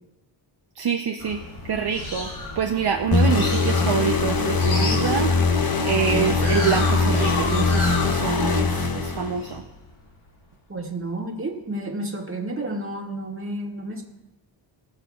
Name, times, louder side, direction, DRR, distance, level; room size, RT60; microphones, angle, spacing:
voice 1, 0.8-2.3 2.6-5.3 5.8-9.6, right 7 dB, 55° right, 3 dB, 0.7 m, -26 dB
sound 1, 1.2-10.3, left 2 dB, 80° left, 2.4 m, -32 dB
sound 2, 3.1-9.6, left 3 dB, 50° left, 1.0 m, -22 dB
voice 2, 10.7-14.0, right 1 dB, 25° right, -1 dB, 2.0 m, -31 dB
20.0 x 6.7 x 2.4 m, 0.99 s
wide cardioid pair, 70°, 47 cm